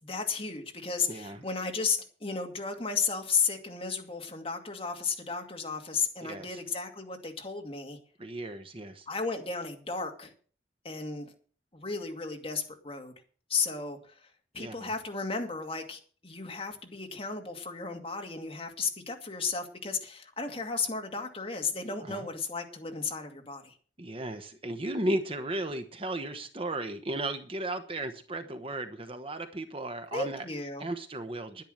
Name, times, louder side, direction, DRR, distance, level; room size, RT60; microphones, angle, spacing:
voice 1, 0.0-8.0 9.1-10.3 10.8-11.3 11.7-13.1 13.5-23.8 30.1-30.9, left 5 dB, 30° left, 3 dB, 2.4 m, -34 dB
voice 2, 1.1-1.4 6.2-6.6 8.2-9.1 14.6-14.9 22.0-22.3 24.0-30.4 30.8-31.6, right 1 dB, 30° right, 8 dB, 1.0 m, -35 dB
11.0 x 10.5 x 6.6 m, 0.43 s
head